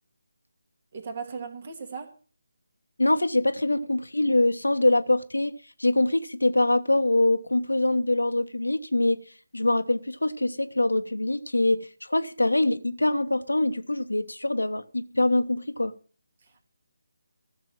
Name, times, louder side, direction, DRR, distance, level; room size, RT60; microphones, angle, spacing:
voice 1, 0.9-2.1, right 5 dB, 35° right, 2.4 m, -36 dB
voice 2, 3.0-5.5 5.8-9.2 9.5-15.9, left 2 dB, 75° left, 1.1 m, -24 dB
14.5 x 6.9 x 7.3 m
figure-of-eight pair, 150°, 0 cm